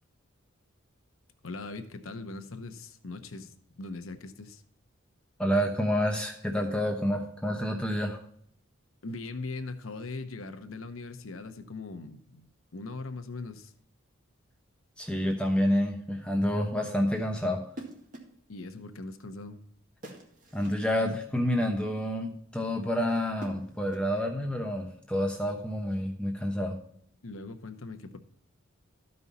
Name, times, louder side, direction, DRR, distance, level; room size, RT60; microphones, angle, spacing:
voice 1, 1.4-4.6 9.0-13.7 18.5-19.6 27.2-28.2, left 3 dB, 85° left, 0.9 m, -40 dB
voice 2, 5.4-8.2 15.0-17.6 20.5-26.8, equal, 5° left, 0.9 m, -28 dB
sound 1, 17.7-18.4 20.0-20.8 23.1-24.2, right 1 dB, 40° right, 1.9 m, -46 dB
13.0 x 5.4 x 4.1 m
head